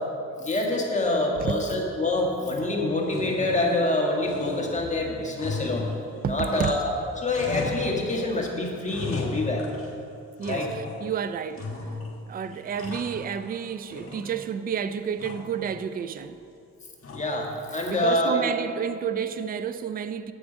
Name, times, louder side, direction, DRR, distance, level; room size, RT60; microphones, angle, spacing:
voice 1, 0.4-5.9 6.3-9.6 10.5-10.7 17.1-18.5, left 2 dB, 25° left, 1.6 m, -26 dB
voice 2, 1.4-1.8 6.2-6.7 10.4-11.7 12.3-16.4 17.9-20.3, right 7 dB, 30° right, 0.4 m, -30 dB
sound 1, 2.1-2.7 3.0-4.0 4.3-7.0 7.3-8.3 8.6-10.0 10.4-11.1 11.5-12.2 12.5-13.6 13.9-14.6 15.2-15.6 17.0-17.5, left 3 dB, 45° left, 1.6 m, -36 dB
8.7 x 7.1 x 5.1 m
cardioid pair, 90°, 30 cm